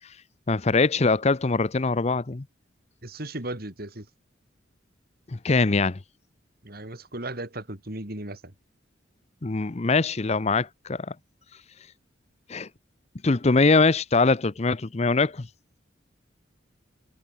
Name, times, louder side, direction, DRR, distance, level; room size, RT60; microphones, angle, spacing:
voice 1, 0.5-2.4 5.3-6.0 9.4-11.1 12.5-12.7 13.2-15.5, left 3 dB, 35° left, 0.6 m, -22 dB
voice 2, 3.0-4.1 6.6-8.5, right 1 dB, 50° right, 3.6 m, -36 dB
head